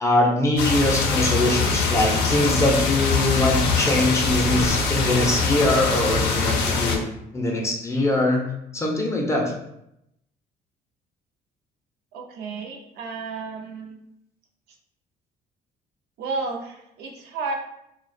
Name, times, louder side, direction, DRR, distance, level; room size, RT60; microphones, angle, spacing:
voice 1, 0.0-7.1 7.3-9.5, left 2 dB, 15° left, 0 dB, 0.5 m, -22 dB
sound 1, 0.6-7.0, left 4 dB, 85° left, 0.5 m, -23 dB
voice 2, 12.1-14.0 16.2-17.6, right 3 dB, 75° right, 1 dB, 0.5 m, -32 dB
2.3 x 2.1 x 2.5 m, 0.78 s
cardioid pair, 110°, 17 cm